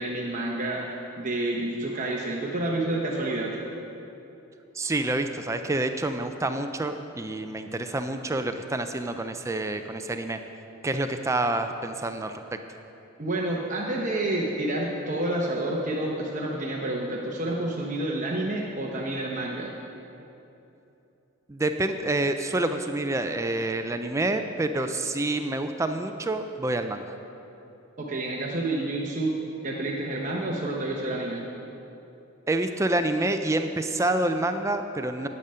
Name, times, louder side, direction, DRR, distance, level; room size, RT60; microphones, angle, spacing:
voice 1, 0.0-3.6 13.2-19.8 28.0-29.3 29.6-31.5, right 1 dB, 35° right, -2 dB, 0.9 m, -29 dB
voice 2, 4.7-10.4 10.8-12.6 21.5-27.1 32.5-35.3, right 2 dB, 15° right, 7 dB, 0.3 m, -28 dB
11.0 x 8.8 x 5.5 m, 2.9 s
head